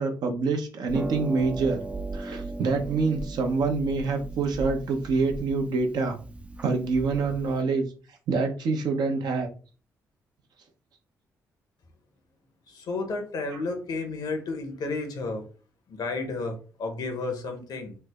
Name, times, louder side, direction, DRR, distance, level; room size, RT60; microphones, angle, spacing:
voice 1, 0.0-1.8 2.1-6.2 6.6-7.9 8.3-9.5, right 4 dB, 70° right, 4 dB, 0.7 m, -26 dB
Harp, 0.9-7.6, right 3 dB, 15° right, 0.4 m, -37 dB
voice 2, 12.7-15.5 15.9-18.0, left 3 dB, 65° left, 5 dB, 0.9 m, -32 dB
3.3 x 2.0 x 3.4 m, 0.37 s
supercardioid pair, 55°, 7 cm